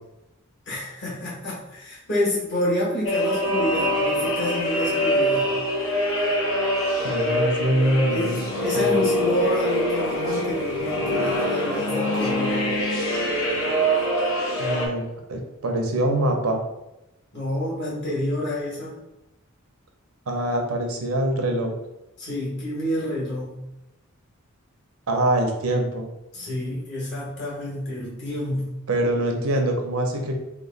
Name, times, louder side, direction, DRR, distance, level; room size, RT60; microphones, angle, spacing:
voice 1, 0.7-5.6 8.1-12.6 17.3-19.0 22.2-23.6 26.3-28.7, left 1 dB, 55° left, -6 dB, 1.4 m, -28 dB
sound 1, 3.0-14.9, equal, 75° left, 0.9 m, -24 dB
voice 2, 7.0-8.4 8.7-9.0 14.6-15.0 15.3-16.6 20.3-21.7 25.1-26.1 28.9-30.4, right 1 dB, 85° right, 3 dB, 0.7 m, -24 dB
3.0 x 2.3 x 3.8 m, 0.92 s
head